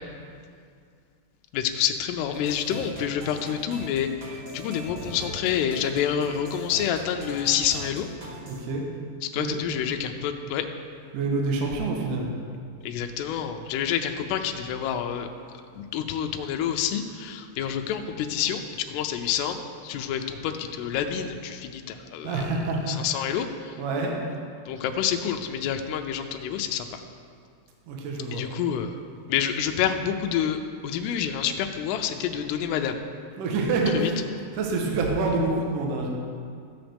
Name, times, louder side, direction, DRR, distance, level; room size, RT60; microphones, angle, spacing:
voice 1, 1.5-4.1 4.5-8.1 9.3-10.7 12.9-15.3 15.8-19.6 19.8-22.4 22.9-23.7 24.7-26.9 28.3-28.9 29.3-33.0 33.9-34.1, left 9 dB, 80° left, 5 dB, 2.6 m, -28 dB
sound 1, 2.3-8.6, right 1 dB, 50° right, 1.5 m, -41 dB
voice 2, 8.5-8.8 9.4-9.6 11.1-12.3 22.2-23.0 23.8-24.1 27.9-28.4 33.4-34.2 34.5-36.1, right 3 dB, 65° right, 0 dB, 2.2 m, -27 dB
13.5 x 8.9 x 3.5 m, 2.3 s
omnidirectional pair, 4.8 m